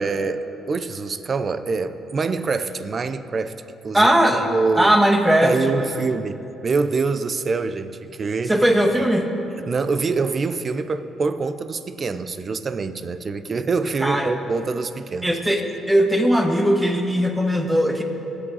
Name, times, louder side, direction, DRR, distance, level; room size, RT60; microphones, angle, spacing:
voice 1, 0.0-3.5 3.8-4.9 5.4-8.6 9.6-15.3, right 4 dB, 40° right, 12 dB, 0.6 m, -25 dB
voice 2, 3.9-4.5 4.8-6.0 8.5-9.3 14.0-14.4 15.2-18.0, equal, 10° right, 4 dB, 1.4 m, -19 dB
21.5 x 8.1 x 4.1 m, 2.8 s
cardioid pair, 90°, 0 cm